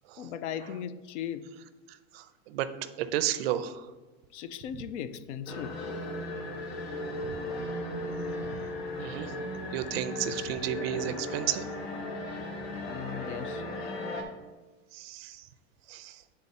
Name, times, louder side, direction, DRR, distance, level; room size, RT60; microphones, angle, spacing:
voice 1, 0.2-1.4 4.3-6.0 12.8-13.7, left 9 dB, 75° left, 13 dB, 0.6 m, -38 dB
voice 2, 2.1-2.7 3.0-3.8 9.0-9.3 9.7-11.6 14.9-15.4 15.9-16.2, right 11 dB, 55° right, 12 dB, 0.5 m, -32 dB
sound 1, 5.5-14.2, left 1 dB, 60° left, 1.3 m, -36 dB
8.5 x 3.7 x 4.1 m, 1.3 s
supercardioid pair, 175°, 35 cm